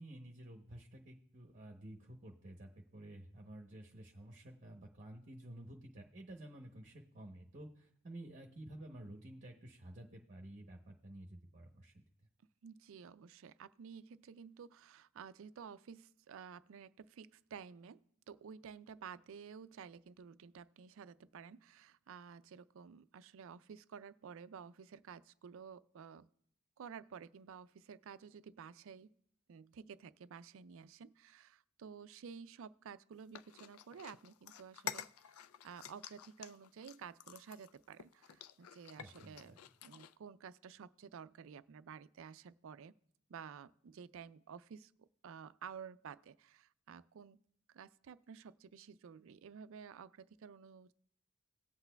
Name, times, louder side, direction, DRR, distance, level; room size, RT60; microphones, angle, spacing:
voice 1, 0.0-11.9 39.0-39.6, right 1 dB, 40° right, 2 dB, 0.8 m, -52 dB
voice 2, 12.6-26.3 26.8-29.1 29.5-35.3 35.6-39.5 39.8-42.9 43.3-47.4 47.7-50.9, right 7 dB, 65° right, 15 dB, 0.4 m, -52 dB
sound 1, 33.3-40.1, left 9 dB, 85° left, 0.4 m, -50 dB
18.0 x 8.1 x 2.2 m, 0.68 s
head